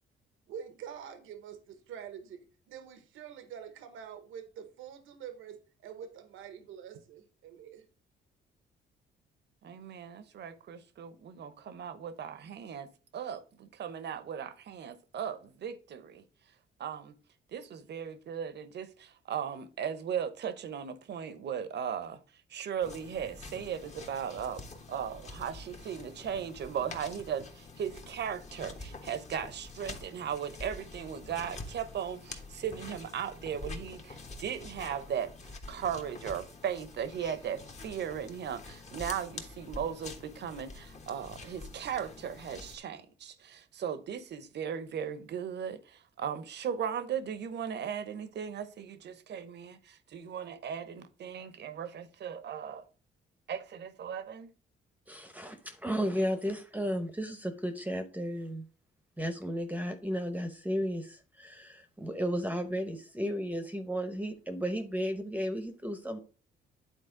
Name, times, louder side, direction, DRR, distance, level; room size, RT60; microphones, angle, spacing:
voice 1, 0.5-7.8, right 8 dB, 85° right, 0.9 m, -46 dB
voice 2, 9.6-16.2 16.8-17.2 17.5-22.2 22.5-52.8 53.5-54.5, right 8 dB, 60° right, 0.8 m, -37 dB
sound 1, 22.8-42.8, left 3 dB, 35° left, 1.2 m, -47 dB
voice 3, 55.1-58.6 59.2-66.2, equal, 10° right, 0.8 m, -34 dB
9.2 x 4.1 x 3.7 m
cardioid pair, 90°, 20 cm